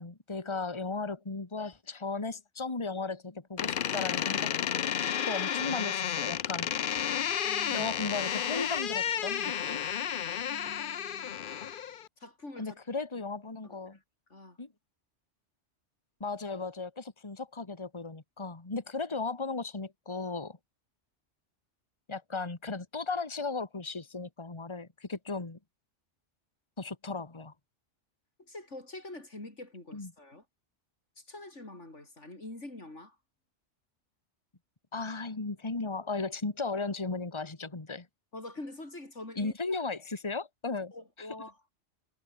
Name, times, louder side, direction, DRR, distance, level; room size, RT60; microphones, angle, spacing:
voice 1, 0.0-4.6 5.3-6.7 7.7-9.8 12.6-14.0 14.6-14.7 16.2-20.6 22.1-25.6 26.8-27.5 29.9-30.1 34.9-38.1 39.4-40.9 41.2-41.3, left 3 dB, 25° left, 1.8 m, -36 dB
Door, 3.6-12.1, left 9 dB, 55° left, 0.8 m, -32 dB
voice 2, 7.4-7.9 10.5-11.3 12.2-12.8 13.6-14.0 14.3-14.6 28.5-30.4 31.2-33.2 38.3-39.5 40.9-41.6, left 2 dB, 80° left, 5.8 m, -45 dB
omnidirectional pair, 1.2 m